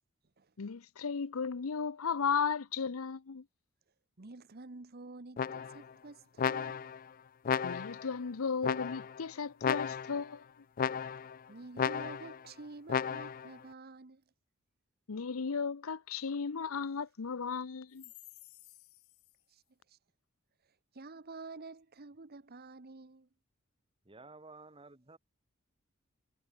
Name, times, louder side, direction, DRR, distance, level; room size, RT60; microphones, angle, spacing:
voice 1, 0.6-3.4 7.6-10.4 15.1-18.1, left 5 dB, 90° left, 0.7 m, -35 dB
voice 2, 4.2-6.9 11.5-14.2 19.5-19.6 19.9-20.0 20.9-23.3, right 3 dB, 50° right, 1.1 m, -49 dB
sound 1, 5.4-5.9 6.4-7.0 7.4-8.1 8.6-9.2 9.6-10.3 10.8-11.4 11.8-12.4 12.9-13.5, left 7 dB, 40° left, 0.4 m, -34 dB
voice 3, 24.1-25.2, right 3 dB, 25° right, 2.0 m, -53 dB
head